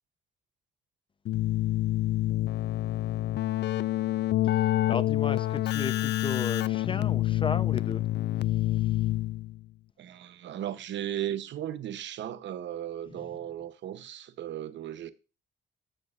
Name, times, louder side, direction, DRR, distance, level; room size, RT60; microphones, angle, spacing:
Keyboard (musical), 1.3-9.6, left 14 dB, 60° left, 0.4 m, -27 dB
voice 1, 4.4-8.0 8.5-9.0 13.1-13.4, left 5 dB, 25° left, 0.7 m, -36 dB
voice 2, 10.0-15.1, right 11 dB, 70° right, 0.9 m, -36 dB
15.5 x 6.2 x 2.5 m
cardioid pair, 90°, 20 cm